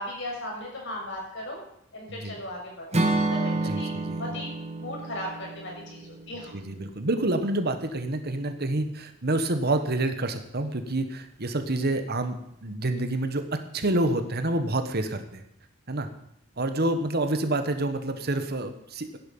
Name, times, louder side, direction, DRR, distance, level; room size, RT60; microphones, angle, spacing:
voice 1, 0.0-1.6 1.9-4.5 4.8-6.5, left 1 dB, 65° left, -1 dB, 6.3 m, -37 dB
Acoustic guitar / Strum, 2.9-7.0, right 2 dB, 35° right, 1.9 m, -29 dB
voice 2, 3.7-4.2 6.5-12.4 12.6-15.4 15.9-16.1 16.6-19.2, right 2 dB, 50° right, 8 dB, 1.5 m, -28 dB
16.0 x 11.0 x 5.6 m, 0.78 s
head